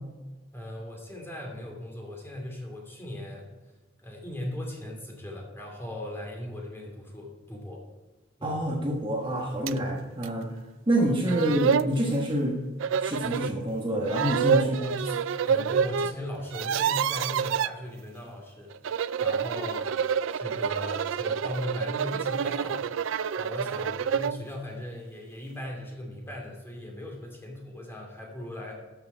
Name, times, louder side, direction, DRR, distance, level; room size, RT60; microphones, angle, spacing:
voice 1, 0.5-3.5 4.0-7.8 8.4-8.7 14.6-20.0 20.4-22.8 23.4-28.7, left 1 dB, 10° left, -1 dB, 2.6 m, -38 dB
voice 2, 8.4-10.5 10.9-12.6 13.0-14.8, right 1 dB, 25° right, -1 dB, 1.3 m, -27 dB
sound 1, 9.7-9.8 10.2-10.3 11.0-11.1 11.3-11.9 12.8-13.5 14.1-16.1 16.4-17.7 18.7-24.4, right 7 dB, 75° right, 0.4 m, -28 dB
12.5 x 6.8 x 4.5 m, 1.2 s
head